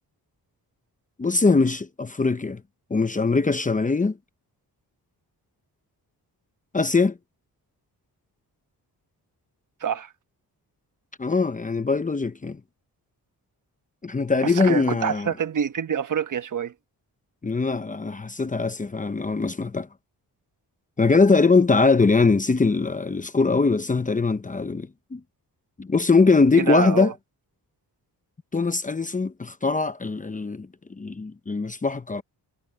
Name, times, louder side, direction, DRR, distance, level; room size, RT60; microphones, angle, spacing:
voice 1, 1.2-2.6 2.9-4.2 6.7-7.2 11.2-12.6 14.0-15.3 17.4-19.9 21.0-25.2 25.8-27.1 28.5-32.2, left 4 dB, 20° left, 0.8 m, -22 dB
voice 2, 9.8-10.1 14.4-16.7 26.6-27.1, right 8 dB, 50° right, 1.2 m, -26 dB
wide cardioid pair, 130°, 39 cm